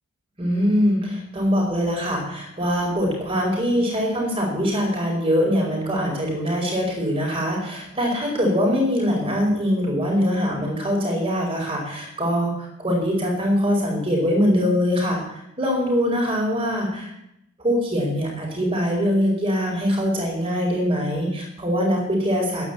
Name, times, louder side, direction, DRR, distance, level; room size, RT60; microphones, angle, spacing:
voice 1, 0.4-17.1 17.6-22.7, equal, 25° right, -1 dB, 5.0 m, -23 dB
11.0 x 9.9 x 8.3 m, 0.80 s
head